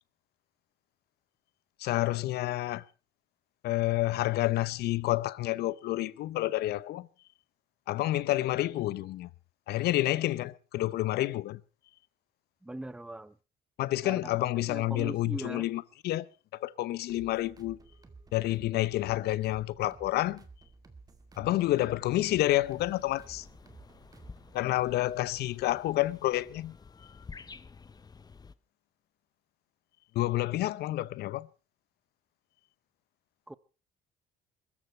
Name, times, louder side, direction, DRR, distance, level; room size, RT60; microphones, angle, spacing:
voice 1, 1.8-2.8 3.6-7.1 7.9-9.3 9.7-11.6 13.8-17.8 18.3-20.4 21.4-23.5 24.5-26.8 30.1-31.5, left 16 dB, 75° left, 0.7 m, -29 dB
voice 2, 12.6-13.4 14.0-14.2 14.7-15.7 33.5-33.6, right 1 dB, 5° right, 0.7 m, -40 dB
sound 1, 17.1-24.6, right 3 dB, 20° right, 2.3 m, -54 dB
sound 2, 22.0-28.5, left 5 dB, 25° left, 0.9 m, -52 dB
22.5 x 13.5 x 4.4 m
cardioid pair, 110°, 17 cm